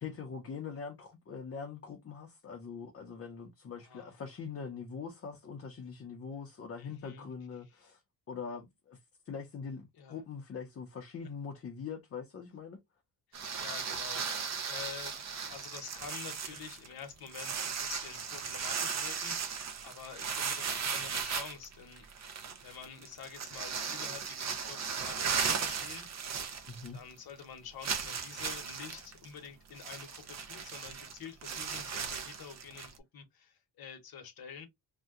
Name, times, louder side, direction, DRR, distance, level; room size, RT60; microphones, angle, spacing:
voice 1, 0.0-8.0 8.3-9.0 9.2-12.8 26.6-27.0, left 6 dB, 35° left, 0.5 m, -43 dB
voice 2, 3.8-4.2 6.8-7.3 9.9-10.2 13.3-14.4 14.6-22.0 22.6-26.1 26.9-34.7, left 7 dB, 60° left, 0.9 m, -48 dB
sound 1, 13.3-27.1 27.4-27.5 27.8-33.0, right 6 dB, 40° right, 0.5 m, -37 dB
2.7 x 2.1 x 3.5 m
wide cardioid pair, 170°, 42 cm